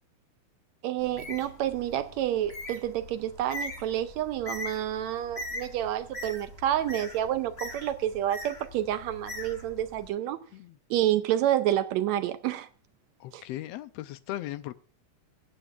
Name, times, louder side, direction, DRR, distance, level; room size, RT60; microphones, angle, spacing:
voice 1, 0.8-10.4 10.9-12.7 13.3-13.4, right 12 dB, 75° right, 1.8 m, -29 dB
Bird, 1.0-10.1, left 1 dB, 30° left, 1.2 m, -41 dB
voice 2, 13.2-14.7, left 14 dB, 80° left, 1.5 m, -38 dB
22.0 x 8.3 x 2.4 m
omnidirectional pair, 3.4 m